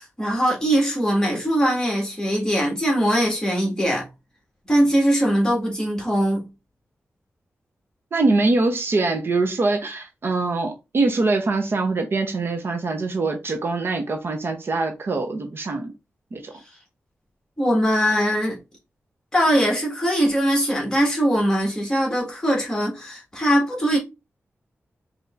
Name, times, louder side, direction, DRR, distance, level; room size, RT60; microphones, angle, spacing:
voice 1, 0.0-4.1 4.7-6.5 17.6-18.6 19.3-24.0, equal, 15° left, 1.7 m, -21 dB
voice 2, 8.1-15.9 16.3-16.5, right 3 dB, 50° right, 0.8 m, -23 dB
5.2 x 2.9 x 2.5 m
wide cardioid pair, 140°, 5 cm